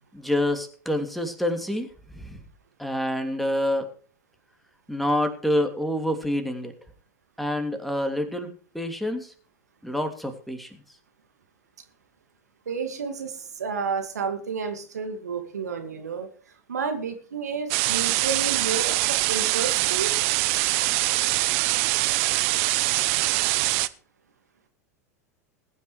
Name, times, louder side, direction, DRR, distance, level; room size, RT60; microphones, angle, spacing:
voice 1, 0.1-1.9 2.2-2.4 2.8-3.9 4.9-6.7 7.4-9.3 9.8-10.7, left 1 dB, ahead, 5 dB, 2.8 m, -27 dB
voice 2, 12.7-16.3 16.7-20.1, right 5 dB, 75° right, 6 dB, 2.2 m, -31 dB
sound 1, 17.7-23.9, right 21 dB, 50° right, 0.7 m, -23 dB
20.5 x 9.7 x 3.3 m, 0.41 s
figure-of-eight pair, 85°, 9 cm